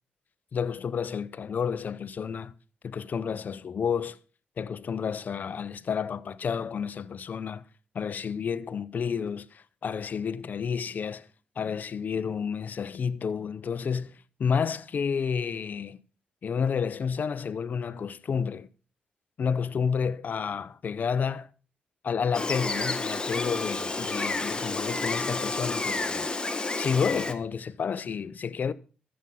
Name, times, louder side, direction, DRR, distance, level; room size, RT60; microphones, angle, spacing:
voice 1, 0.5-2.5 2.8-4.2 4.6-7.6 7.9-11.3 11.6-14.1 14.4-16.0 16.4-18.7 19.4-21.5 22.0-26.3 26.7-28.7, left 6 dB, 60° left, 0.8 m, -30 dB
Gull seagull, 22.3-27.3, left 3 dB, 25° left, 1.5 m, -30 dB
13.5 x 7.8 x 5.6 m
cardioid pair, 60°, 3 cm